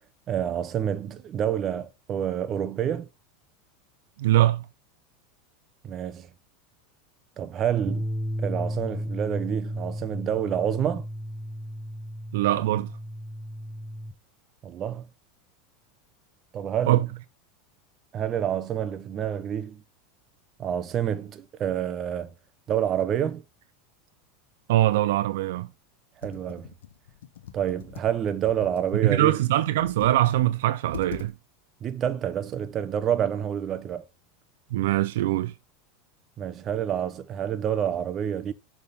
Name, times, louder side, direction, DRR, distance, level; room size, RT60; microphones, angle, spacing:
voice 1, 0.3-3.1 5.8-6.3 7.4-8.1 8.4-11.1 14.6-15.1 16.5-17.0 18.1-19.8 20.6-22.3 22.7-23.4 26.2-26.7 27.5-29.3 31.8-34.1 36.4-38.5, right 9 dB, 35° right, 0.7 m, -28 dB
voice 2, 4.2-4.7 12.3-12.9 16.9-17.1 24.7-25.7 29.0-31.3 34.7-35.5, right 15 dB, 75° right, 0.3 m, -22 dB
sound 1, 7.9-14.1, equal, ahead, 0.8 m, -34 dB
Computer keyboard, 26.2-28.9 29.6-30.3 30.6-30.7 30.9-31.3, left 9 dB, 90° left, 0.9 m, -42 dB
6.7 x 3.6 x 5.2 m
supercardioid pair, 120°, 0 cm